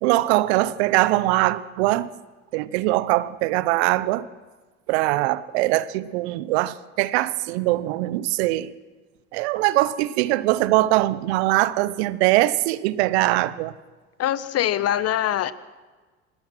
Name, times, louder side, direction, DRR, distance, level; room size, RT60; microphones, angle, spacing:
voice 1, 0.0-2.1 2.5-4.3 4.9-8.7 9.3-13.7, right 17 dB, 65° right, 1.0 m, -22 dB
voice 2, 14.2-15.5, left 11 dB, 45° left, 1.3 m, -23 dB
27.5 x 19.5 x 6.1 m
hypercardioid pair, 65°, 35 cm